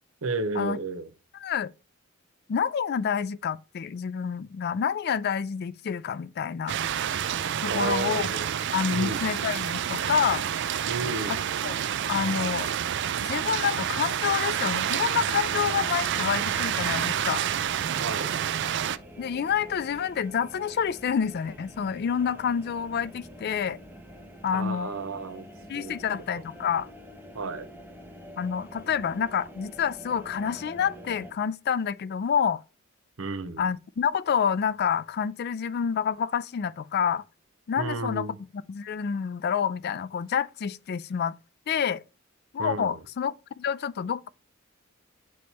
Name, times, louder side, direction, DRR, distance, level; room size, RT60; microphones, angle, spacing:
voice 1, 0.2-1.1 7.7-8.5 8.9-9.3 10.9-11.4 18.0-18.3 24.5-25.5 25.7-26.0 27.3-27.7 33.2-33.7 37.8-38.4 42.6-43.0, right 3 dB, 80° right, 0.8 m, -32 dB
voice 2, 1.4-1.7 2.5-6.8 7.6-8.3 8.7-10.5 11.3-11.4 11.6-11.8 12.1-12.7 13.2-17.4 19.2-23.8 24.4-24.9 25.7-26.9 28.4-32.6 33.6-37.2 37.7-38.3 38.7-41.3 41.7-42.0 42.5-44.3, left 7 dB, 50° left, 0.4 m, -28 dB
sound 1, 6.7-19.0, right 9 dB, 60° right, 0.4 m, -28 dB
sound 2, 14.7-31.3, equal, 10° right, 0.8 m, -46 dB
8.5 x 3.2 x 4.1 m
head